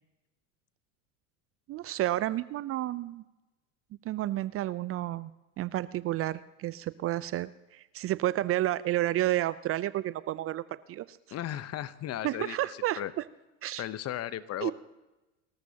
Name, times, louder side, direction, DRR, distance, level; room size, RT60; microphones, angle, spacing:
voice 1, 1.7-3.2 4.0-5.3 5.6-10.6 10.9-11.2 12.2-13.2 13.6-13.9 14.6-14.7, right 14 dB, 35° right, 17 dB, 0.5 m, -31 dB
voice 2, 11.3-12.6 13.0-13.1 13.8-14.7, left 12 dB, 40° left, 16 dB, 0.9 m, -35 dB
29.5 x 14.0 x 2.9 m, 1.1 s
hypercardioid pair, 85°, 39 cm